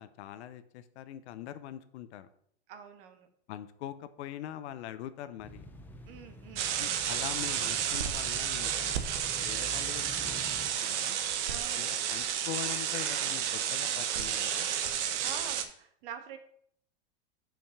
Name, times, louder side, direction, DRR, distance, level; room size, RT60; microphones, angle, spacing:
voice 1, 0.0-2.3 3.5-5.7 6.8-9.1 9.4-11.2 11.8-14.7, left 12 dB, 65° left, 12 dB, 0.8 m, -43 dB
voice 2, 2.7-3.3 6.1-6.7 11.5-11.9 15.2-16.4, right 8 dB, 50° right, 7 dB, 1.3 m, -45 dB
sound 1, 5.4-10.7, left 1 dB, 5° left, 0.5 m, -47 dB
sound 2, 6.6-15.6, right 9 dB, 75° right, 1.1 m, -31 dB
5.8 x 5.2 x 6.4 m, 0.66 s
supercardioid pair, 145°, 35 cm